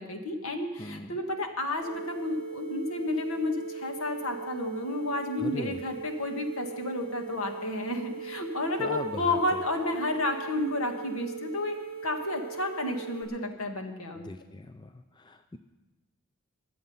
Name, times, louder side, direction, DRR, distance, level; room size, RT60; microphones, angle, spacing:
voice 1, 0.0-11.7 12.0-14.3, left 2 dB, 70° left, 4 dB, 1.7 m, -31 dB
voice 2, 0.8-1.2 5.4-5.8 8.8-9.4 14.2-14.9 15.2-15.6, left 2 dB, 20° left, 9 dB, 0.4 m, -39 dB
sound 1, 1.8-13.2, right 6 dB, 5° left, 2.7 m, -40 dB
23.0 x 7.7 x 5.5 m, 1.1 s
head